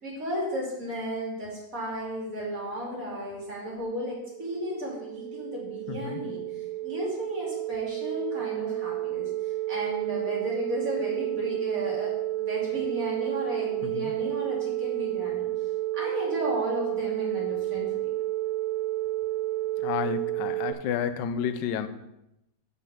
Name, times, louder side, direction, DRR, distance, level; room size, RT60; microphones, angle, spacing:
voice 1, 0.0-15.7 15.9-18.1, equal, 50° right, -4 dB, 3.1 m, -34 dB
sound 1, 3.7-20.7, right 16 dB, 70° right, 0.9 m, -31 dB
voice 2, 5.9-6.2 13.8-14.1 19.8-21.9, left 8 dB, 90° left, 11 dB, 1.3 m, -31 dB
6.2 x 5.6 x 7.0 m, 0.88 s
omnidirectional pair, 1.8 m